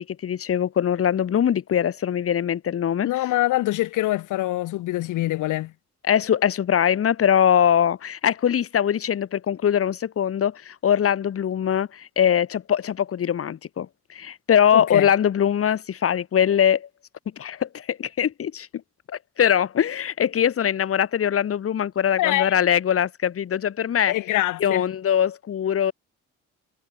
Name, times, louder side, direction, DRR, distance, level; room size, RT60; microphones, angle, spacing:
voice 1, 0.0-3.1 6.0-16.9 17.4-18.7 19.1-24.1 24.6-25.9, left 9 dB, 50° left, 1.3 m, -22 dB
voice 2, 3.0-5.7 14.7-15.1 22.2-22.6 24.1-24.8, left 16 dB, 85° left, 1.4 m, -24 dB
cardioid pair, 90°, 30 cm